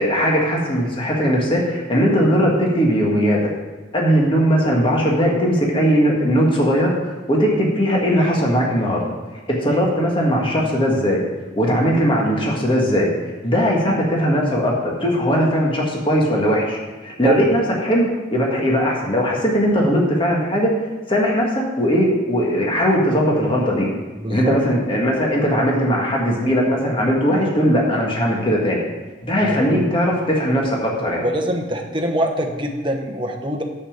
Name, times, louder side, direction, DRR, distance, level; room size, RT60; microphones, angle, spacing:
voice 1, 0.0-3.4 3.9-6.9 7.3-9.0 9.5-11.2 11.6-13.1 13.4-20.7 21.1-23.9 24.3-28.8 29.2-31.2, equal, 25° left, -2 dB, 1.7 m, -19 dB
voice 2, 24.2-24.6 29.4-29.8 31.2-33.6, right 1 dB, 25° right, 3 dB, 1.0 m, -23 dB
7.0 x 6.9 x 7.3 m, 1.2 s
head